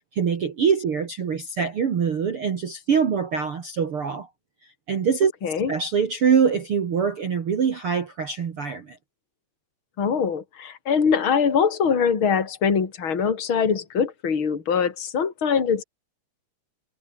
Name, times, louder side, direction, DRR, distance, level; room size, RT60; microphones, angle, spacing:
voice 1, 0.0-4.3 4.9-5.3 5.7-9.0, right 6 dB, 45° right, 1.9 m, -24 dB
voice 2, 5.4-5.7 10.0-15.8, left 6 dB, 30° left, 4.0 m, -23 dB
omnidirectional pair, 4.6 m